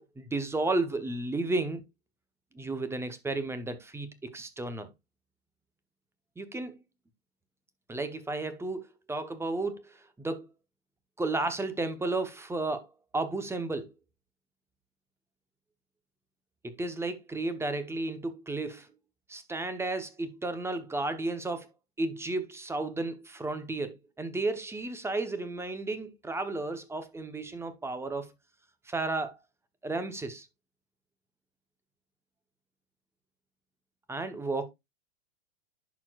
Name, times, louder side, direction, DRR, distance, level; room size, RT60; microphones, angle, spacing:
voice 1, 0.0-1.8 2.5-4.9 6.4-6.8 7.9-10.5 11.2-13.9 16.6-18.9 19.3-21.7 22.0-28.3 28.9-29.4 29.8-30.5 34.1-34.7, right 2 dB, 10° right, 0.9 m, -33 dB
11.0 x 4.5 x 2.4 m
hypercardioid pair, 115°, 31 cm